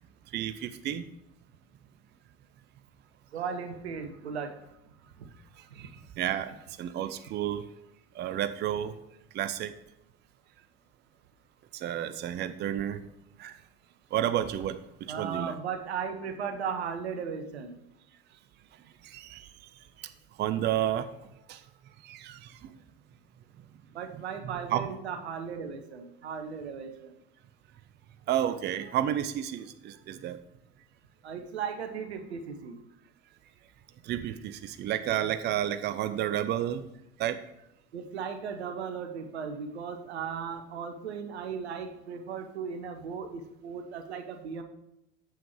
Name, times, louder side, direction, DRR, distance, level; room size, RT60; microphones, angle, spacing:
voice 1, 0.3-1.0 5.8-5.9 6.2-7.7 8.1-9.0 9.3-9.7 11.7-13.0 13.4-13.6 14.1-15.6 19.0-19.5 20.0-20.1 20.4-21.1 21.5-21.6 22.0-22.7 24.4-24.9 28.3-30.4 34.0-36.9 37.2-37.4, right 11 dB, 35° right, 12 dB, 0.5 m, -31 dB
voice 2, 3.3-4.8 5.2-5.3 5.7-5.9 15.1-17.8 23.9-27.1 31.2-32.8 37.9-44.6, right 6 dB, 80° right, 6 dB, 1.0 m, -36 dB
7.3 x 5.8 x 4.8 m, 0.85 s
figure-of-eight pair, 70°, 32 cm